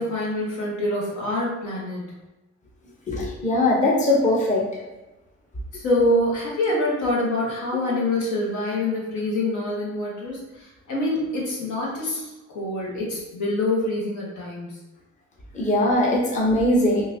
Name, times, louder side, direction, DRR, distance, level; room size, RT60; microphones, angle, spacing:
voice 1, 0.0-2.1 5.7-14.8, left 1 dB, 75° left, -4 dB, 1.2 m, -25 dB
voice 2, 3.1-4.6 15.5-17.1, left 1 dB, 25° left, -3 dB, 0.8 m, -20 dB
3.8 x 2.5 x 2.7 m, 1.0 s
cardioid pair, 90°, 30 cm